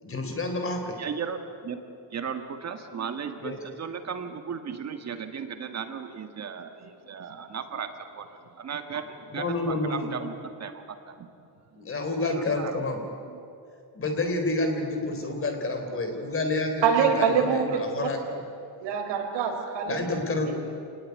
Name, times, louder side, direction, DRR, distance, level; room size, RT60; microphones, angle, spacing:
voice 1, 0.0-1.0 3.4-3.6 9.3-10.2 11.8-13.0 13.9-18.4 19.9-20.5, left 2 dB, 30° left, 5 dB, 3.9 m, -29 dB
voice 2, 1.0-1.8 2.1-11.3 11.7-11.8 12.3-12.7 13.3-13.4, right 6 dB, 35° right, 7 dB, 1.8 m, -36 dB
voice 3, 16.8-17.8 18.8-20.1 20.4-20.5, right 6 dB, 75° right, 2 dB, 4.9 m, -24 dB
27.0 x 19.5 x 9.5 m, 2.5 s
cardioid pair, 165°, 44 cm